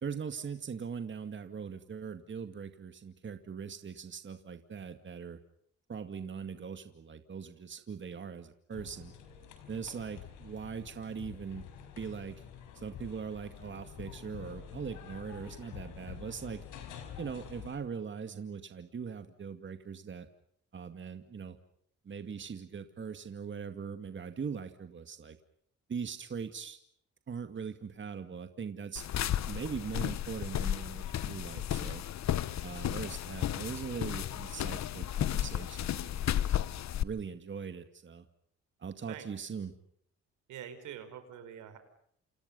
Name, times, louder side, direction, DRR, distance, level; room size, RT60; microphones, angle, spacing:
voice 1, 0.0-5.4 5.9-9.1 9.7-11.6 12.0-12.3 12.7-16.6 17.2-20.3 20.7-21.6 22.0-25.4 25.9-26.8 27.3-29.0 29.5-32.0 32.6-36.5 37.0-38.3 38.8-39.7, right 6 dB, 40° right, 8 dB, 2.2 m, -41 dB
sound 1, 8.7-17.8, left 8 dB, 90° left, 5.2 m, -48 dB
sound 2, 29.0-37.0, left 11 dB, 65° left, 1.2 m, -33 dB
voice 2, 40.5-41.8, right 9 dB, 85° right, 9 dB, 5.0 m, -45 dB
29.0 x 28.5 x 5.5 m, 0.68 s
cardioid pair, 90°, 30 cm